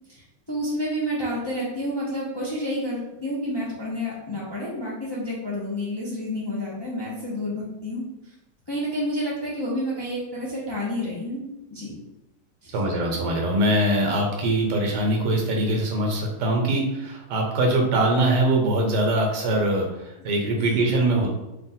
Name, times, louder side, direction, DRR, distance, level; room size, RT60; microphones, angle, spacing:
voice 1, 0.1-8.3 8.7-11.4 11.7-11.9 12.6-12.8 20.6-20.8, equal, 30° left, -6 dB, 0.5 m, -30 dB
voice 2, 12.7-21.3, right 1 dB, 85° right, 1 dB, 1.5 m, -22 dB
3.4 x 2.4 x 4.2 m, 0.95 s
omnidirectional pair, 1.8 m